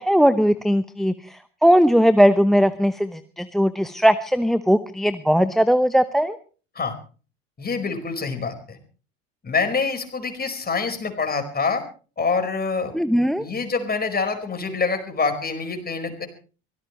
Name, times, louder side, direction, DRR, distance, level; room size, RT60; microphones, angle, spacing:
voice 1, 0.0-6.4 12.9-13.4, equal, ahead, 15 dB, 0.9 m, -19 dB
voice 2, 7.6-8.8 9.4-11.8 12.2-12.9 13.4-16.3, left 4 dB, 25° left, 6 dB, 4.9 m, -26 dB
24.0 x 17.5 x 3.1 m, 0.38 s
hypercardioid pair, 65°, 37 cm